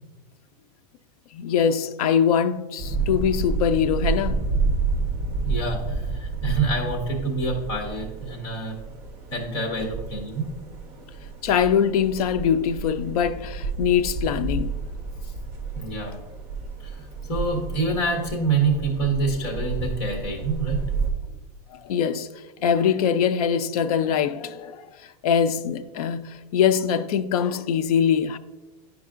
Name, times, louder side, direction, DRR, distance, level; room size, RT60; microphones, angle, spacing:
voice 1, 1.3-4.4 11.4-14.7 21.8-22.3 22.6-24.8 25.2-28.4, left 8 dB, 65° left, 0.5 m, -22 dB
sound 1, 2.8-21.1, right 4 dB, 30° right, 0.9 m, -30 dB
voice 2, 5.5-8.8 9.3-10.5 15.2-15.3 15.7-16.2 16.8-20.8, right 3 dB, 45° left, 1.6 m, -27 dB
10.5 x 4.7 x 2.5 m
supercardioid pair, 175°, 21 cm